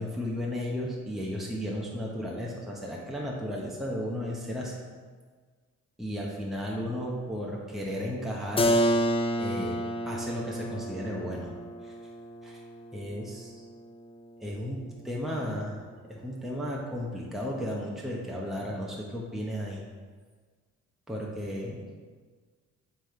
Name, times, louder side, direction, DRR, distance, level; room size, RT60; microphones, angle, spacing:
voice 1, 0.0-4.8 6.0-8.7 9.4-11.5 11.8-12.0 12.4-12.6 12.9-13.6 14.4-15.8 16.1-19.8 21.1-21.8, equal, ahead, -3 dB, 1.0 m, -34 dB
Keyboard (musical), 8.6-14.2, equal, 20° left, 0.4 m, -30 dB
7.6 x 3.5 x 4.4 m, 1.5 s
cardioid pair, 90°, 30 cm